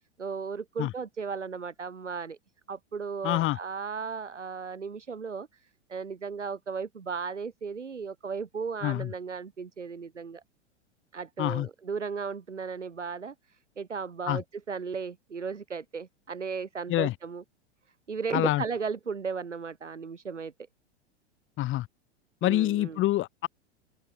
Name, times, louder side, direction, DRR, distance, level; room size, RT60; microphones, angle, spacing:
voice 1, 0.2-2.4 2.7-10.4 11.1-17.4 18.1-20.5 22.4-23.0, right 5 dB, 85° right, 3.0 m, -35 dB
voice 2, 3.2-3.6 8.8-9.1 11.4-11.7 14.3-14.4 16.9-17.1 18.3-18.6 21.6-21.9 22.4-23.5, left 16 dB, 35° left, 3.5 m, -26 dB
open air
hypercardioid pair, 100°, 35 cm